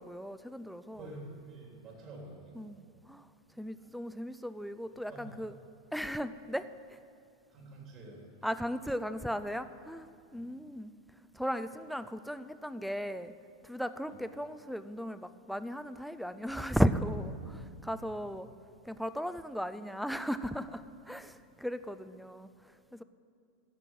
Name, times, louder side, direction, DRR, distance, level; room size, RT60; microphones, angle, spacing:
voice 1, 0.0-1.2 2.5-3.3 3.6-5.5 5.9-7.0 8.4-10.9 11.3-13.3 13.6-18.5 18.8-23.0, equal, ahead, 12 dB, 0.4 m, -36 dB
voice 2, 0.9-2.5 5.1-5.3 7.5-8.2 10.3-10.4 18.0-18.1, right 2 dB, 35° right, -2 dB, 3.5 m, -48 dB
14.5 x 6.2 x 9.1 m, 2.3 s
supercardioid pair, 160°, 0 cm